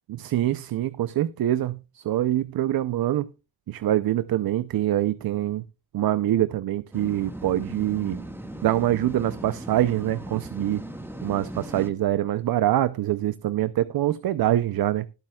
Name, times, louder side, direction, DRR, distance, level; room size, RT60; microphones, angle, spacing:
voice 1, 0.1-3.3 3.7-5.6 5.9-8.3 8.6-10.8 11.2-15.1, right 13 dB, 65° right, 0.7 m, -25 dB
sound 1, 6.9-11.9, right 1 dB, 5° right, 1.6 m, -38 dB
20.5 x 7.6 x 2.3 m
cardioid pair, 95°, 39 cm